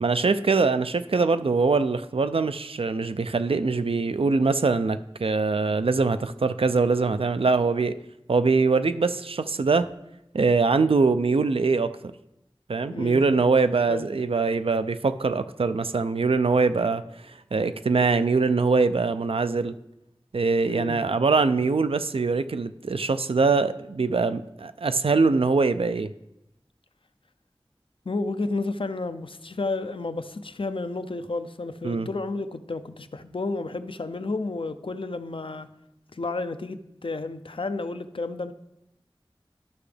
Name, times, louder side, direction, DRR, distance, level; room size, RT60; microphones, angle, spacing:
voice 1, 0.0-8.0 8.3-9.9 10.3-12.1 12.7-17.0 17.5-19.7 20.3-26.1 31.8-32.1, right 4 dB, 80° right, 11 dB, 0.4 m, -23 dB
voice 2, 12.9-13.2 13.9-14.1 20.6-21.0 28.1-35.7 36.1-38.5, left 3 dB, 70° left, 11 dB, 0.5 m, -31 dB
12.0 x 5.8 x 3.3 m, 0.87 s
wide cardioid pair, 45°, 9 cm